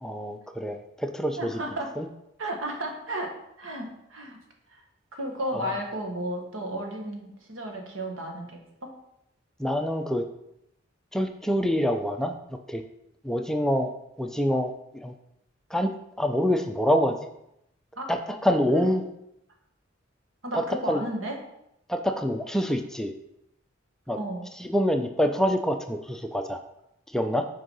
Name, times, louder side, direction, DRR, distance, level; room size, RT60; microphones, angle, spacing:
voice 1, 0.0-1.6 2.0-2.1 5.5-5.7 9.6-10.2 11.1-12.4 12.7-12.8 13.2-13.9 14.2-14.7 15.0-15.1 15.7-15.9 16.2-17.2 18.1-19.0 20.5-21.0 21.9-23.1 24.1-24.2 24.6-26.6 27.1-27.5, equal, 5° left, 5 dB, 0.4 m, -26 dB
voice 2, 1.4-1.9 2.4-4.4 4.7-4.8 5.1-8.9 18.0-18.1 18.7-18.9 20.4-21.4 24.2-24.5, right 1 dB, 85° right, 2 dB, 1.4 m, -33 dB
6.3 x 4.7 x 5.4 m, 0.81 s
head